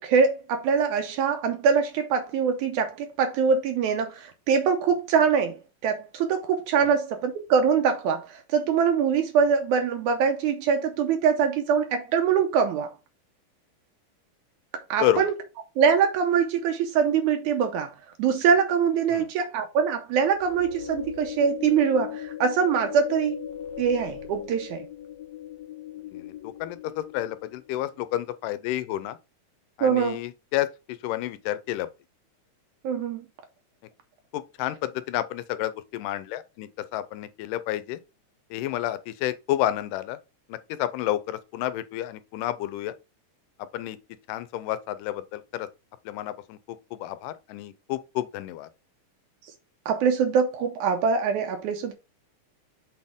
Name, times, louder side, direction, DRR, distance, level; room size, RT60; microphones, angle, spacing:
voice 1, 0.0-12.9 14.9-15.4 15.8-23.5 23.8-24.9 29.8-30.2 32.8-33.3 49.9-51.9, right 6 dB, 80° right, 2.0 m, -23 dB
voice 2, 15.0-15.3 19.1-19.3 26.1-29.2 29.8-31.9 34.3-38.0 38.5-40.2 40.5-42.9 43.7-44.0 44.3-45.7 46.1-48.7, left 13 dB, 85° left, 2.2 m, -30 dB
sound 1, 20.4-27.7, left 10 dB, 70° left, 1.7 m, -38 dB
6.2 x 4.4 x 3.5 m
omnidirectional pair, 3.7 m